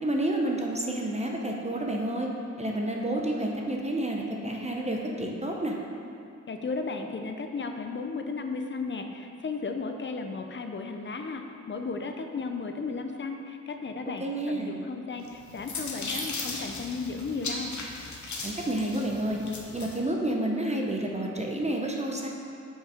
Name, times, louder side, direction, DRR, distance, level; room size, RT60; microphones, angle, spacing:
voice 1, 0.0-2.3 2.6-5.8 14.2-14.8 18.4-19.4 19.7-22.3, right 1 dB, 25° right, 0 dB, 0.7 m, -29 dB
voice 2, 6.5-17.7, left 4 dB, 40° left, 5 dB, 0.6 m, -35 dB
sound 1, 15.2-20.0, left 3 dB, 75° left, 0.9 m, -37 dB
5.7 x 5.5 x 5.0 m, 2.7 s
wide cardioid pair, 95°, 29 cm